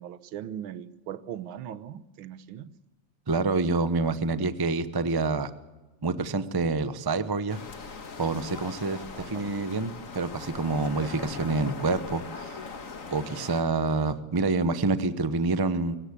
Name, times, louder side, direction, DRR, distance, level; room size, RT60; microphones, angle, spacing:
voice 1, 0.0-2.7 9.1-9.5, right 10 dB, 90° right, 15 dB, 1.7 m, -39 dB
voice 2, 3.3-5.5 6.0-7.6 8.2-12.6 13.1-16.0, right 3 dB, 35° right, 12 dB, 0.3 m, -27 dB
sound 1, 7.5-13.6, left 4 dB, 45° left, 1.9 m, -40 dB
24.5 x 16.5 x 8.3 m, 1.2 s
omnidirectional pair, 2.1 m